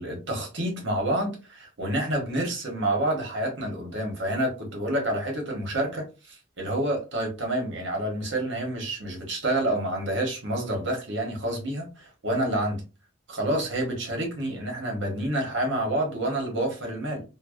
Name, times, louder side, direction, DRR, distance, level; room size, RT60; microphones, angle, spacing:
voice 1, 0.0-12.8 13.3-17.2, right 1 dB, 60° right, 1.0 m, -28 dB
2.6 x 2.1 x 2.3 m
head